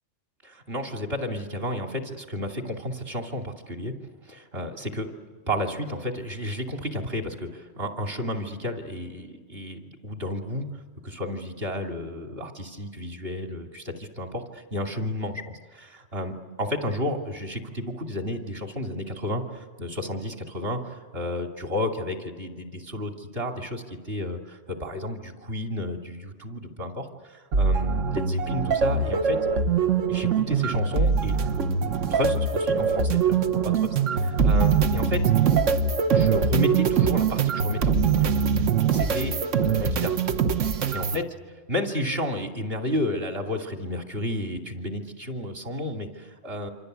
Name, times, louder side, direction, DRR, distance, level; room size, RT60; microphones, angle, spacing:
voice 1, 0.4-3.9 4.2-10.7 11.0-29.4 30.1-33.9 34.2-35.3 36.1-38.2 38.9-40.2 40.9-41.2 41.7-46.7, left 1 dB, 50° right, 3 dB, 3.0 m, -32 dB
sound 1, 27.5-41.2, right 6 dB, 80° right, 1.3 m, -23 dB
27.0 x 26.5 x 8.2 m, 1.5 s
omnidirectional pair, 1.3 m